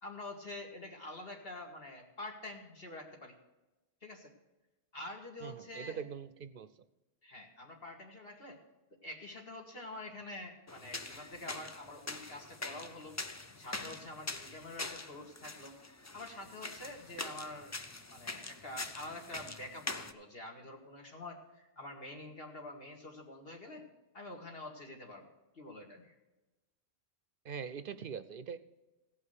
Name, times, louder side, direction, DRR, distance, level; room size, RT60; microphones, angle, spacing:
voice 1, 0.0-3.3 4.0-4.3 4.9-6.0 7.2-8.6 9.0-13.2 13.6-15.8 16.1-17.8 18.1-23.8 24.1-26.2, left 2 dB, 65° left, 1 dB, 2.4 m, -47 dB
voice 2, 5.4-6.7 27.4-28.6, right 7 dB, 60° right, 13 dB, 0.7 m, -42 dB
sound 1, 10.7-20.1, left 2 dB, 20° left, 0.4 m, -44 dB
16.0 x 5.6 x 8.1 m, 1.0 s
omnidirectional pair, 1.1 m